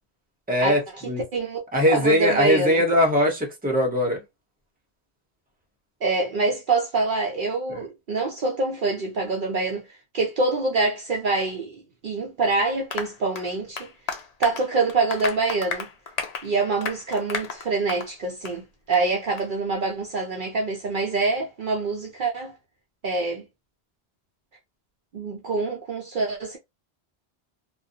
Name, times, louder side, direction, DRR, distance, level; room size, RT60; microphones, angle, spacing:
voice 1, 0.5-1.2 1.7-4.2 7.7-7.8, equal, 10° right, 0.7 m, -21 dB
voice 2, 1.3-1.6 1.9-2.8 6.0-9.8 10.1-13.9 14.4-15.9 16.4-22.6 23.0-23.4 25.1-26.6, right 3 dB, 60° right, 0.6 m, -25 dB
Applause, 12.9-18.1 18.4-18.6 18.9-19.0 19.4-19.5, left 5 dB, 55° left, 0.4 m, -33 dB
2.4 x 2.2 x 2.6 m
omnidirectional pair, 1.1 m